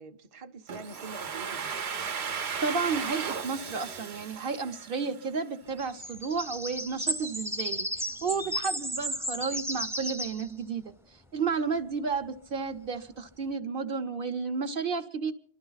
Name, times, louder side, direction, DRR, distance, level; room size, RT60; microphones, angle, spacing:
voice 1, 0.0-1.7 8.2-8.6, right 3 dB, 35° right, 0.7 m, -46 dB
Domestic sounds home sounds, 0.7-5.4, right 6 dB, 80° right, 1.1 m, -36 dB
voice 2, 2.6-10.8 11.3-15.3, right 5 dB, 60° right, 0.9 m, -32 dB
sound 1, 5.7-10.5, equal, 5° right, 0.5 m, -34 dB
28.0 x 12.0 x 4.0 m
omnidirectional pair, 1.1 m